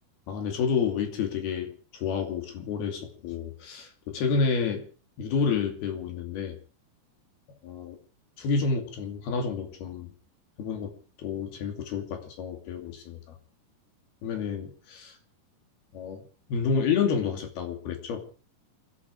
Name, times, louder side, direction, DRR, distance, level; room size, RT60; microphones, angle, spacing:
voice 1, 0.3-4.8 5.2-6.6 7.6-8.0 8.4-10.1 10.6-13.4 14.2-15.2 15.9-18.2, left 5 dB, 85° left, 5 dB, 4.5 m, -29 dB
28.5 x 10.5 x 4.7 m, 0.40 s
omnidirectional pair, 4.3 m